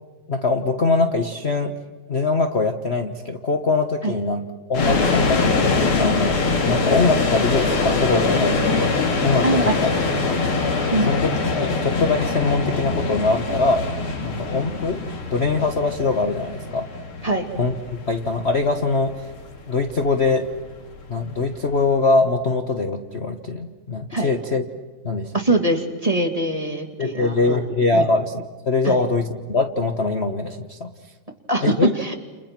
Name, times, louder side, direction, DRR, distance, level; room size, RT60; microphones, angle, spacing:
voice 1, 0.3-1.7 2.1-4.4 4.7-5.7 6.0-8.9 9.2-9.9 10.3-10.4 10.9-13.8 14.2-15.0 15.3-16.9 17.6-19.3 19.7-20.5 21.1-24.6 25.0-25.3 27.0-28.3 28.6-30.9 31.6-31.9, left 3 dB, 35° left, 5 dB, 1.3 m, -22 dB
sound 1, 4.7-21.7, left 4 dB, 85° left, 3.4 m, -23 dB
voice 2, 9.4-9.7 10.9-11.1 17.2-17.5 24.1-24.3 25.3-27.6 27.9-28.0 28.8-29.0 31.5-32.2, right 2 dB, 15° right, 3 dB, 2.2 m, -22 dB
30.0 x 30.0 x 6.0 m, 1.3 s
omnidirectional pair, 2.3 m